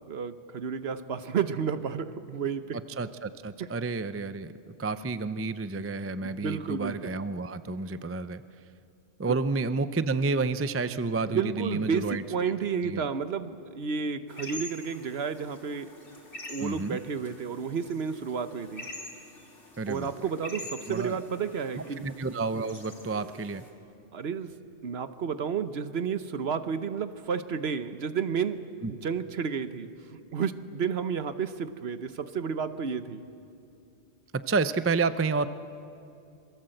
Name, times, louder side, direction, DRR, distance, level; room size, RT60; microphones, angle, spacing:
voice 1, 0.1-2.8 3.6-3.7 6.2-7.1 9.3-9.4 11.2-16.0 16.5-18.9 19.9-22.1 24.1-24.5 24.8-33.2, right 6 dB, 55° right, 11 dB, 1.1 m, -31 dB
voice 2, 3.0-8.4 9.2-12.5 12.8-13.1 16.6-17.0 19.8-20.1 20.9-21.2 21.8-23.6 28.8-28.9 34.3-35.5, right 4 dB, 20° right, 12 dB, 0.3 m, -30 dB
sound 1, 14.3-23.7, left 1 dB, 70° left, 3.8 m, -45 dB
27.0 x 22.5 x 7.8 m, 2.6 s
omnidirectional pair, 1.3 m